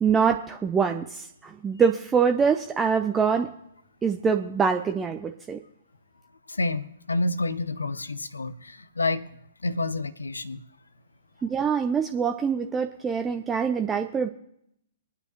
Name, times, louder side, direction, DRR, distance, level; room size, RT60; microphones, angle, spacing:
voice 1, 0.0-3.5 4.0-5.6 11.4-14.3, right 6 dB, 15° right, 0.6 m, -24 dB
voice 2, 6.5-9.2 9.6-10.6, left 2 dB, 75° left, 0.7 m, -29 dB
25.5 x 9.6 x 3.0 m
figure-of-eight pair, 115°, 0 cm